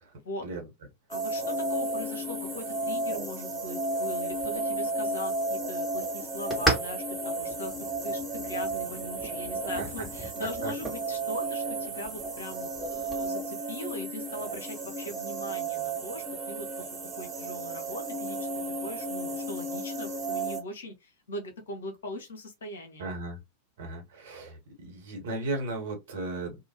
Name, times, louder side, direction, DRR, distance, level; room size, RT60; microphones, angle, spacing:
voice 1, 1.1-7.7 8.0-16.9 17.2-18.5 18.8-23.1, left 1 dB, 65° left, 1.0 m, -40 dB
sound 1, 1.1-20.6, right 2 dB, 20° right, 1.4 m, -33 dB
sound 2, 4.3-13.3, right 2 dB, 5° right, 1.5 m, -37 dB
voice 2, 23.0-23.4 23.8-26.6, right 2 dB, 55° right, 1.4 m, -35 dB
2.8 x 2.4 x 3.0 m
figure-of-eight pair, 90°, 0 cm